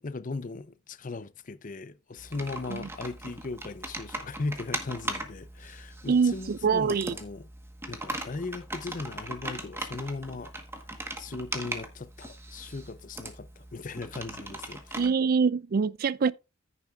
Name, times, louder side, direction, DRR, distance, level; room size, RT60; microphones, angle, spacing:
voice 1, 0.0-7.5 7.9-10.5 11.2-15.1, left 3 dB, 35° left, 0.5 m, -38 dB
Computer keyboard, 2.2-15.1, right 2 dB, 10° right, 1.2 m, -39 dB
voice 2, 6.1-7.1 15.0-16.3, right 5 dB, 45° right, 0.4 m, -25 dB
14.0 x 6.9 x 2.4 m
head